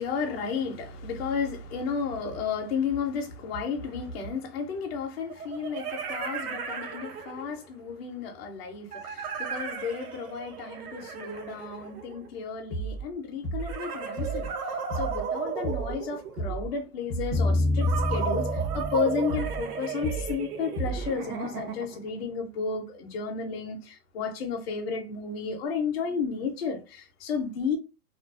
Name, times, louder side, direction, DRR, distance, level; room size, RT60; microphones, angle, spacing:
voice 1, 0.0-14.5 14.9-27.8, left 5 dB, 45° left, 0.5 m, -32 dB
sound 1, 3.8-3.9 5.3-7.7 8.9-12.4 13.6-16.6 17.8-22.1, right 6 dB, 75° right, 0.7 m, -35 dB
sound 2, 12.7-13.1 13.4-13.8 14.2-14.5 14.9-15.3 15.6-16.0 16.4-16.7 17.1-17.5 17.8-18.2 18.5-18.9 19.3-19.7 20.0-20.4 20.7-21.2, right 3 dB, 5° right, 0.5 m, -33 dB
sound 3, 17.3-20.4, left 2 dB, 40° right, 0.7 m, -28 dB
2.4 x 2.2 x 2.3 m
hypercardioid pair, 160°, 45 cm